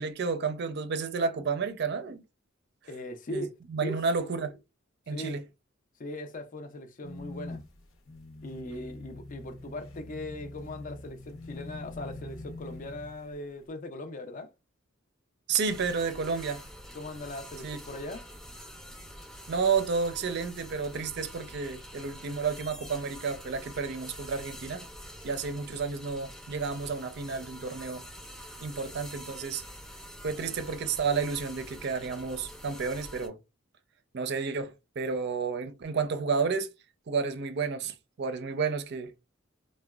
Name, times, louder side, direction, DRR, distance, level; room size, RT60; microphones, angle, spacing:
voice 1, 0.0-2.2 3.3-3.4 3.7-4.6 5.1-5.4 15.5-16.6 17.6-17.8 19.5-24.9 25.2-28.0 28.6-29.6 30.2-33.4 34.1-36.7 37.1-39.1, right 5 dB, 55° right, 0.5 m, -31 dB
voice 2, 2.9-3.5 3.8-4.0 5.1-5.4 6.0-7.7 8.4-14.5 16.9-18.3 30.4-30.6, left 1 dB, 40° left, 0.4 m, -39 dB
sound 1, 7.0-13.5, left 2 dB, 75° left, 0.8 m, -44 dB
sound 2, 15.6-33.3, equal, 5° left, 0.6 m, -46 dB
3.7 x 2.1 x 2.3 m
head